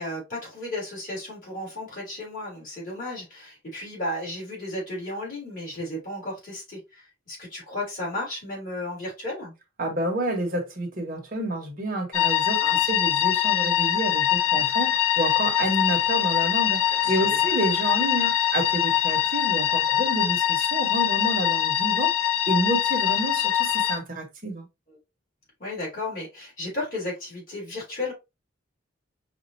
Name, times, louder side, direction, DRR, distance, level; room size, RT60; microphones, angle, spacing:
voice 1, 0.0-9.5 12.6-12.8 17.0-17.4 24.9-25.0 25.6-28.1, left 1 dB, 40° left, 2.8 m, -34 dB
voice 2, 9.8-12.6 12.9-22.1 22.5-24.6, right 1 dB, 45° right, 1.3 m, -29 dB
sound 1, 12.1-24.0, left 11 dB, 85° left, 0.7 m, -23 dB
5.2 x 2.7 x 2.7 m
head